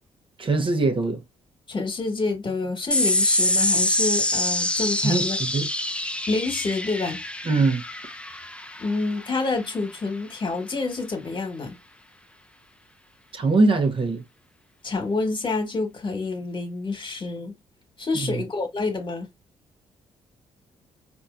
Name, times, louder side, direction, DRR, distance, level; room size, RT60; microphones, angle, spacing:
voice 1, 0.4-1.2 5.0-5.7 7.4-7.8 13.3-14.2 18.1-18.4, right 3 dB, 45° right, 0.9 m, -22 dB
voice 2, 1.7-5.4 6.3-7.2 8.8-11.7 14.8-17.5 18.0-19.3, left 3 dB, 40° left, 1.5 m, -28 dB
Noise Sweep Reso, 2.9-9.7, left 1 dB, 10° left, 0.7 m, -25 dB
4.2 x 2.7 x 2.5 m
supercardioid pair, 55°, 13 cm